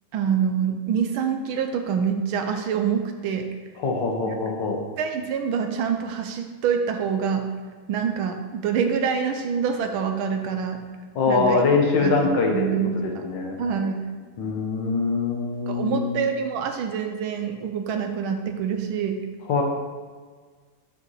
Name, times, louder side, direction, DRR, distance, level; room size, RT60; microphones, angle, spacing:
voice 1, 0.1-3.5 4.3-4.4 5.0-7.5 7.9-10.8 11.3-11.6 12.0-13.2 13.6-14.1 15.7-19.2, right 7 dB, 75° right, 5 dB, 1.4 m, -26 dB
voice 2, 3.8-4.8 11.2-12.6 13.0-13.6 14.4-16.1 19.5-19.6, left 4 dB, 65° left, 2 dB, 1.5 m, -23 dB
11.0 x 5.0 x 3.2 m, 1.5 s
omnidirectional pair, 2.4 m